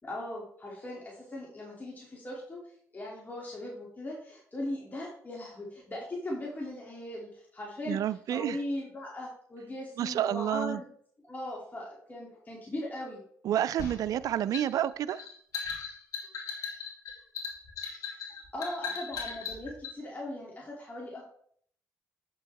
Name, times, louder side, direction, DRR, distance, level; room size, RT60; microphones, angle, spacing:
voice 1, 0.0-2.6 2.9-10.9 11.3-13.2 18.5-21.3, left 1 dB, 25° left, 2.7 m, -39 dB
voice 2, 7.9-8.6 10.0-10.8 13.4-15.3, right 11 dB, 65° right, 0.4 m, -29 dB
sound 1, 13.8-20.0, left 5 dB, 70° left, 2.8 m, -38 dB
8.2 x 7.1 x 3.5 m
supercardioid pair, 70°, 6 cm